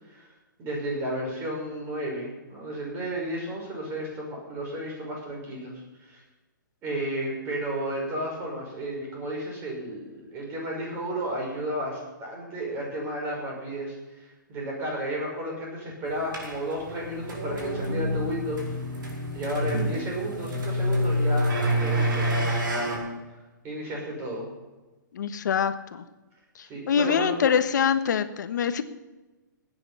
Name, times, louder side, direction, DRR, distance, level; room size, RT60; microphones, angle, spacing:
voice 1, 0.6-6.2 6.8-18.6 19.3-22.9 23.6-24.5 26.7-27.4, right 1 dB, 20° right, -1 dB, 5.8 m, -33 dB
sound 1, 16.3-23.0, equal, 80° right, 6.8 m, -27 dB
voice 2, 25.1-26.0 26.6-28.8, left 7 dB, 60° left, 10 dB, 1.3 m, -25 dB
18.5 x 9.7 x 5.7 m, 1.1 s
hypercardioid pair, 155°, 11 cm